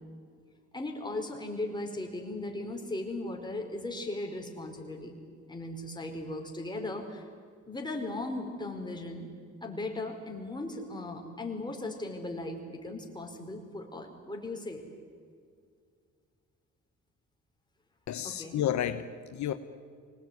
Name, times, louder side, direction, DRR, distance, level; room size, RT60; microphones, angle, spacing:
voice 1, 0.7-5.1 5.5-7.3 7.7-9.3 9.6-14.8 18.2-18.6, left 2 dB, 15° left, 1 dB, 5.2 m, -37 dB
voice 2, 18.1-19.5, left 10 dB, 70° left, 9 dB, 1.1 m, -31 dB
25.0 x 19.5 x 9.6 m, 2.2 s
cardioid pair, 90°, 30 cm